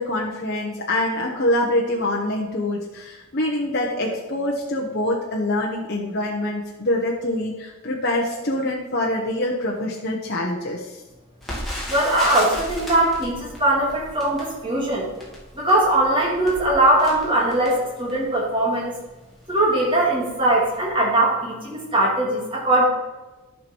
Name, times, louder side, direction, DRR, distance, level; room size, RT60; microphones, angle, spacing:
voice 1, 0.0-11.0, left 1 dB, 50° left, -2 dB, 1.1 m, -25 dB
Crackle, 11.4-18.4 19.0-19.1 19.4-19.6 20.2-20.5 20.7-20.8, equal, ahead, 2.5 m, -35 dB
voice 2, 11.9-15.1 15.5-18.9 19.5-22.8, right 1 dB, 25° right, -4 dB, 2.7 m, -20 dB
11.0 x 6.0 x 4.6 m, 1.1 s
head